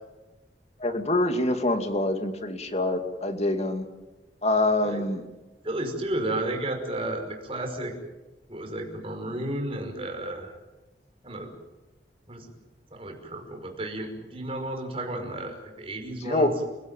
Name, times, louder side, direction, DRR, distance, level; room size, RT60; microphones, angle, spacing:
voice 1, 0.8-3.8 4.4-5.2 16.2-16.5, left 2 dB, 40° left, 6 dB, 2.4 m, -25 dB
voice 2, 5.6-7.9 8.5-10.5 11.2-11.5 12.3-12.5 12.9-16.5, right 1 dB, 35° right, 3 dB, 5.5 m, -32 dB
29.5 x 17.0 x 9.0 m, 1.1 s
head